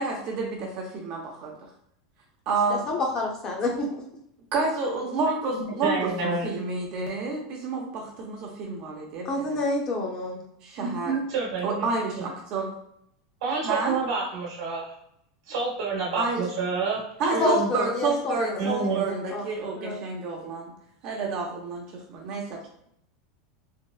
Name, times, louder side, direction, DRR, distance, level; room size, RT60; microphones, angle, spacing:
voice 1, 0.0-1.7 2.5-2.9 4.5-9.6 10.6-11.1 11.6-12.7 13.6-14.0 16.2-16.5 17.2-20.7 21.0-22.6, right 3 dB, 40° right, 0 dB, 0.5 m, -29 dB
voice 2, 2.7-4.0 9.2-10.4 17.4-19.5 19.8-20.0, left 2 dB, 25° left, 0 dB, 0.6 m, -28 dB
voice 3, 5.5-6.5 10.8-11.9 13.4-14.9 15.5-17.7 18.6-19.0, right 4 dB, 85° right, -5 dB, 1.0 m, -29 dB
3.5 x 2.0 x 2.3 m, 0.71 s
supercardioid pair, 165°, 3 cm